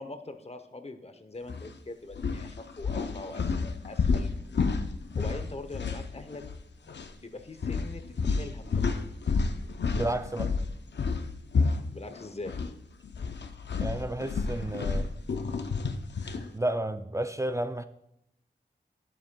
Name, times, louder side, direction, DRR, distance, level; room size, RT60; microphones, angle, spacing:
voice 1, 0.0-4.3 5.2-6.4 6.8-9.0 11.9-12.5, left 2 dB, 35° left, 0.7 m, -42 dB
sound 1, 1.5-1.7 2.1-6.6 6.9-7.1 7.6-12.7 13.0-16.5, left 4 dB, 80° left, 0.5 m, -30 dB
voice 2, 9.9-10.5 13.8-15.1 16.5-17.9, right 1 dB, 15° right, 0.4 m, -31 dB
11.0 x 7.3 x 2.2 m
wide cardioid pair, 60°, 18 cm